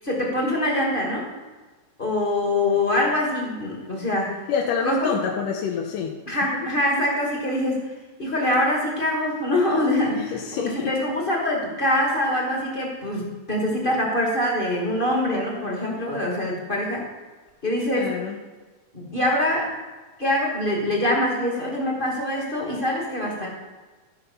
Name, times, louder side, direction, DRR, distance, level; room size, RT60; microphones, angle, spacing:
voice 1, 0.0-1.3 2.0-4.4 4.8-5.1 6.3-7.9 8.2-17.0 17.6-18.1 18.9-19.7 20.2-23.5, left 1 dB, 20° left, -2 dB, 1.5 m, -24 dB
voice 2, 4.5-6.1 6.5-6.7 10.1-10.9 17.9-18.4, left 7 dB, 90° left, 0 dB, 2.4 m, -27 dB
14.0 x 5.9 x 5.5 m, 1.3 s
omnidirectional pair, 3.6 m